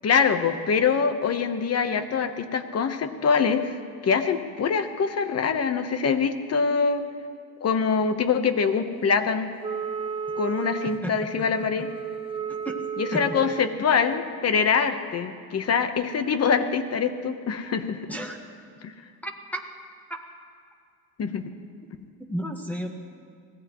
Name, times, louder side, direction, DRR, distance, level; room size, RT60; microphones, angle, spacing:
voice 1, 0.0-3.6 4.0-7.0 7.6-9.5 10.4-11.9 13.0-18.1 18.8-18.9 21.2-21.5, left 6 dB, 40° left, 8 dB, 1.1 m, -24 dB
Wind instrument woodwind instrument, 9.6-13.8, right 6 dB, 15° right, 0.8 m, -33 dB
voice 2, 19.2-19.6 20.1-20.2 22.3-22.9, equal, 5° left, 2 dB, 1.4 m, -33 dB
24.0 x 17.5 x 3.1 m, 2.3 s
cardioid pair, 125°, 38 cm